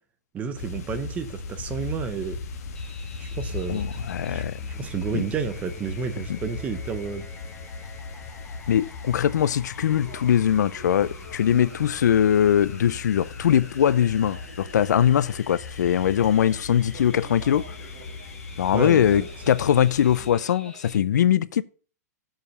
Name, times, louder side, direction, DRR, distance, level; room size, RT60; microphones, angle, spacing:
voice 1, 0.3-2.4 3.2-4.0 4.3-4.4 4.8-7.3 18.7-19.3, right 6 dB, 15° right, 0.8 m, -31 dB
sound 1, 0.6-20.3, left 4 dB, 60° left, 1.5 m, -38 dB
sound 2, 2.7-21.0, left 3 dB, 10° left, 1.0 m, -48 dB
voice 2, 3.7-4.5 5.1-5.2 6.3-6.4 8.7-17.8 18.6-21.6, left 9 dB, 85° left, 0.5 m, -21 dB
Conversation, 9.7-15.5 16.0-20.9, right 5 dB, 50° right, 2.6 m, -48 dB
7.4 x 5.1 x 6.5 m
hypercardioid pair, 160°, 9 cm